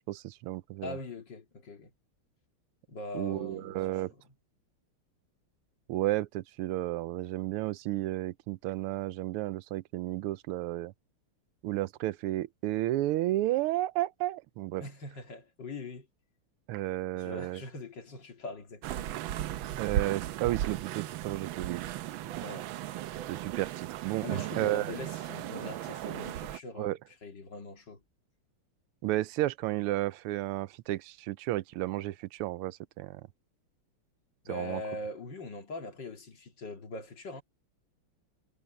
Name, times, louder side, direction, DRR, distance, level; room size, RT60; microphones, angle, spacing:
voice 1, 0.1-1.0 3.1-4.1 5.9-10.9 11.6-14.8 16.7-17.6 19.8-21.9 23.3-24.3 24.6-25.0 26.8-27.0 29.0-33.2 34.5-34.8, right 16 dB, 90° right, 1.5 m, -32 dB
voice 2, 0.8-1.9 2.9-3.8 14.8-16.1 17.2-19.1 22.4-22.7 24.2-28.0 34.4-37.4, left 2 dB, 55° left, 3.0 m, -42 dB
sound 1, 18.8-26.6, right 12 dB, 75° right, 1.4 m, -36 dB
omnidirectional pair, 2.4 m